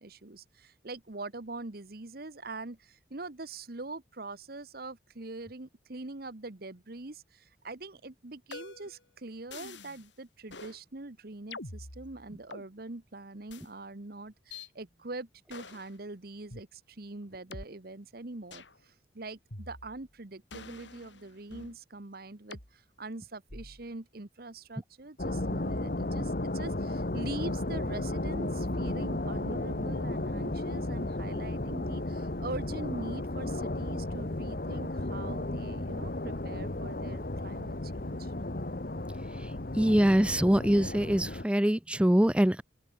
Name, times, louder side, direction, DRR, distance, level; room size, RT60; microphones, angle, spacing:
voice 1, 0.0-38.3, right 2 dB, 55° right, 1.2 m, -43 dB
sound 1, 8.5-9.0 9.5-10.1 10.5-10.8 11.5-12.7 13.5-13.7 14.5-14.7 15.5-15.9 16.5-16.6 17.5-17.6 18.5-18.8 19.5-20.1 20.5-21.8 22.5-22.7 23.5-23.9, left 3 dB, 80° left, 7.2 m, -46 dB
sound 2, 25.2-41.5, left 1 dB, 50° left, 1.4 m, -34 dB
voice 2, 39.4-42.6, equal, 5° right, 0.5 m, -24 dB
open air
head